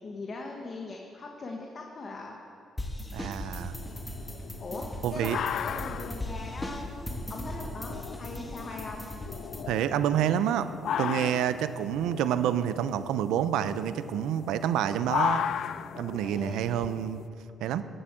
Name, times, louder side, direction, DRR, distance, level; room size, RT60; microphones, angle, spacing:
voice 1, 0.0-2.4 4.6-9.0 16.2-16.6, left 3 dB, 40° left, 1 dB, 1.4 m, -40 dB
sound 1, 2.8-9.6, equal, 10° left, 1.5 m, -38 dB
voice 2, 3.1-3.7 5.0-5.4 9.7-10.7 11.0-15.5 16.0-17.2 17.6-17.8, right 10 dB, 90° right, 13 dB, 0.6 m, -28 dB
sound 2, 3.8-17.3, left 9 dB, 65° left, 0.3 m, -36 dB
15.5 x 8.1 x 7.5 m, 2.5 s
cardioid pair, 100°, 0 cm